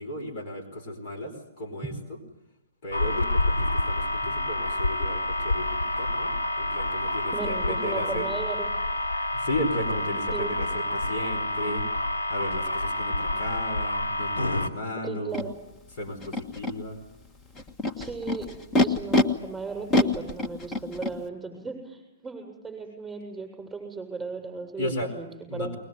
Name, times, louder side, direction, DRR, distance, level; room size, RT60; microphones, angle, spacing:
voice 1, 0.0-2.2 2.8-8.3 9.3-11.9 12.3-15.4 15.9-17.0 24.8-25.1 25.5-25.8, left 1 dB, 50° left, 4 dB, 4.6 m, -34 dB
sound 1, 2.9-14.7, left 1 dB, 80° left, 3.0 m, -28 dB
voice 2, 7.3-8.7 10.3-10.6 15.0-15.6 18.0-18.5 18.8-25.8, right 4 dB, 10° right, 5 dB, 7.5 m, -36 dB
Animal, 15.3-15.4 16.2-16.7 17.6-19.2 19.9-21.1, left 1 dB, 20° left, 1.6 m, -25 dB
21.5 x 21.0 x 9.5 m, 0.92 s
hypercardioid pair, 125°, 0 cm